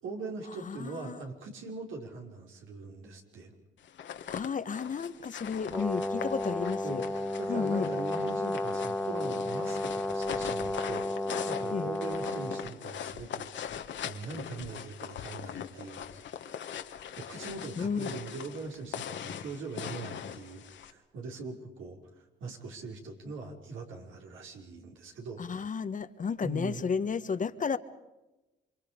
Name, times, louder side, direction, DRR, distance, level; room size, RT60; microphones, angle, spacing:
voice 1, 0.0-3.5 6.8-11.0 11.4-13.5 14.0-16.1 17.1-25.4 26.4-26.8, right 3 dB, 80° right, 5.6 m, -41 dB
voice 2, 0.6-1.2 4.2-7.0 7.5-7.9 11.7-11.9 17.8-18.1 25.4-27.8, left 6 dB, 40° left, 1.3 m, -32 dB
sound 1, 3.8-20.9, left 9 dB, 65° left, 1.7 m, -41 dB
Brass instrument, 5.7-12.7, left 1 dB, 5° left, 1.4 m, -33 dB
29.0 x 25.0 x 5.2 m
cardioid pair, 90°, 20 cm